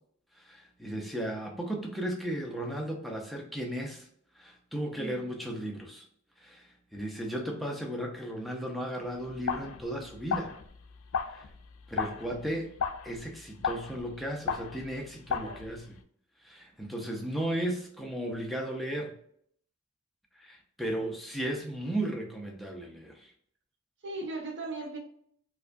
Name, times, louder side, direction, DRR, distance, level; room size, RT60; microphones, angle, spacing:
voice 1, 0.3-4.1 4.4-6.1 6.4-10.5 11.3-11.5 11.9-12.7 13.0-16.0 16.4-19.1 20.3-23.3, right 1 dB, ahead, 0 dB, 0.5 m, -35 dB
sound 1, 9.1-16.0, left 6 dB, 85° left, 0.4 m, -36 dB
voice 2, 24.0-25.0, right 2 dB, 55° right, 0 dB, 0.8 m, -37 dB
4.6 x 2.2 x 2.5 m, 0.65 s
head